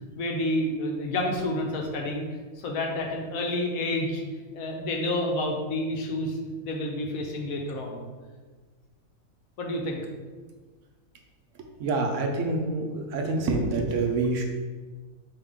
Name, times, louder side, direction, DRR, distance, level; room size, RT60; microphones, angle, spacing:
voice 1, 0.2-2.3 2.6-4.2 4.5-8.1 9.6-10.0, left 1 dB, 80° left, 1 dB, 1.2 m, -29 dB
voice 2, 11.8-14.4, right 3 dB, 65° right, 2 dB, 1.0 m, -26 dB
5.1 x 2.8 x 3.6 m, 1.4 s
omnidirectional pair, 1.5 m